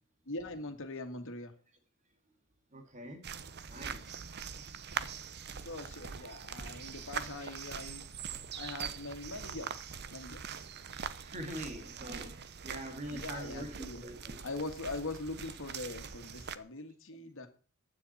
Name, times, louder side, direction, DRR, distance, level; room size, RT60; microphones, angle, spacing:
voice 1, 0.3-1.5 5.6-8.0 8.6-10.6 13.1-14.0 14.4-17.5, left 2 dB, 65° left, 2.1 m, -42 dB
voice 2, 2.7-3.3 3.7-4.2 11.0-14.4, right 1 dB, 35° right, 2.2 m, -44 dB
sound 1, 3.2-16.6, right 7 dB, 50° right, 0.8 m, -43 dB
15.0 x 9.9 x 4.3 m
head